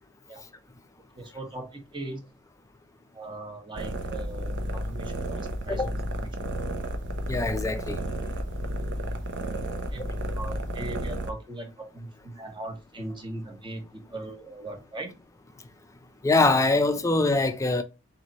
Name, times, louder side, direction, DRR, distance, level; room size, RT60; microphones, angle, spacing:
voice 1, 1.1-2.2 3.1-5.9 6.2-6.3 9.4-10.0 10.3-15.1, right 2 dB, 20° right, 1.0 m, -39 dB
sound 1, 3.7-11.3, right 1 dB, 50° right, 0.7 m, -32 dB
voice 2, 7.3-8.0 16.2-17.8, left 2 dB, 15° left, 0.5 m, -23 dB
4.1 x 3.2 x 4.0 m
head